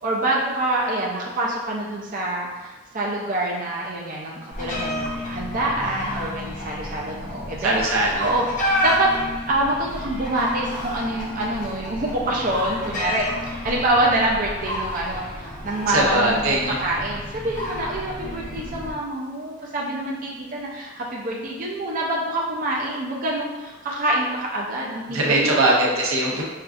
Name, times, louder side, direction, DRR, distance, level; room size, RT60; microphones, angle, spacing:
voice 1, 0.0-7.8 8.2-9.1 9.5-25.7, right 1 dB, 40° right, -3 dB, 0.5 m, -26 dB
sound 1, 4.5-18.9, left 1 dB, 40° left, 0.7 m, -30 dB
voice 2, 7.6-8.3 15.9-16.8 25.1-26.4, right 1 dB, 85° right, -3 dB, 0.8 m, -21 dB
5.4 x 2.4 x 2.4 m, 1.2 s
head